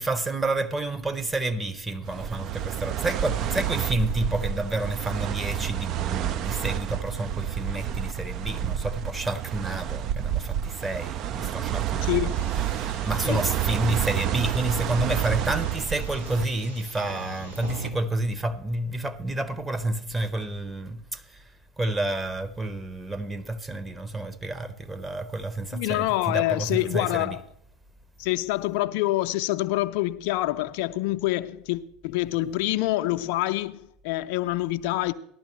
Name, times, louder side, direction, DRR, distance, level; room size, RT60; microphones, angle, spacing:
voice 1, 0.0-12.1 12.7-21.4 21.8-27.4, right 2 dB, 10° right, 0.8 m, -29 dB
sound 1, 2.1-16.5, right 10 dB, 45° right, 0.4 m, -29 dB
voice 2, 12.0-12.5 13.2-13.4 25.7-27.4 28.2-35.1, left 17 dB, 60° left, 0.5 m, -26 dB
sound 2, 12.3-17.9, right 1 dB, 90° right, 1.8 m, -44 dB
14.0 x 12.0 x 3.1 m
figure-of-eight pair, 75°, 0 cm